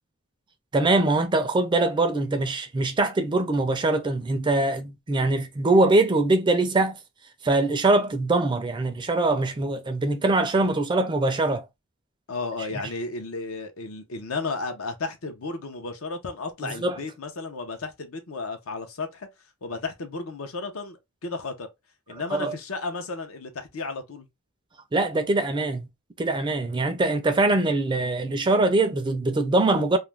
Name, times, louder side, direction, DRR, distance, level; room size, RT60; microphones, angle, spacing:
voice 1, 0.7-7.0 7.4-11.6 16.6-17.0 22.3-22.5 24.9-25.9 26.2-30.0, right 2 dB, 20° right, 0.4 m, -23 dB
voice 2, 12.3-19.3 19.6-21.7 22.1-24.3, left 3 dB, 70° left, 0.6 m, -33 dB
2.4 x 2.2 x 3.1 m
head